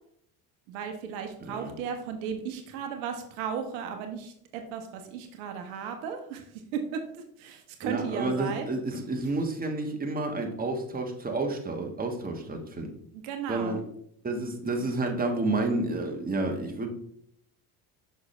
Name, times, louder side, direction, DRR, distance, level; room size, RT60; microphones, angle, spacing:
voice 1, 0.7-8.7 13.1-13.8, right 7 dB, 75° right, 6 dB, 1.0 m, -35 dB
voice 2, 1.4-1.7 7.8-12.9 13.5-13.8 14.2-16.9, right 2 dB, 20° right, 2 dB, 1.4 m, -30 dB
6.0 x 5.6 x 3.2 m, 0.68 s
hypercardioid pair, 70°, 44 cm